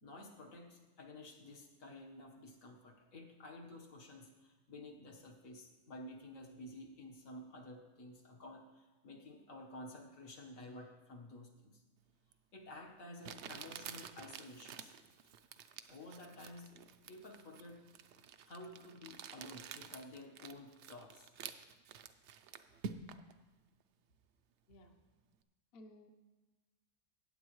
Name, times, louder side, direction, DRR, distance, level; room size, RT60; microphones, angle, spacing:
voice 1, 0.0-11.8 12.5-14.9 15.9-16.8 17.1-17.8 18.4-21.3, left 1 dB, 75° left, 0 dB, 1.7 m, -52 dB
Crumpling crinkling, 12.3-12.4 13.2-23.3, right 7 dB, 65° right, 0.8 m, -50 dB
voice 2, 25.7-26.2, left 1 dB, 50° left, 5 dB, 0.9 m, -57 dB
16.0 x 8.7 x 3.1 m, 1.2 s
omnidirectional pair, 1.4 m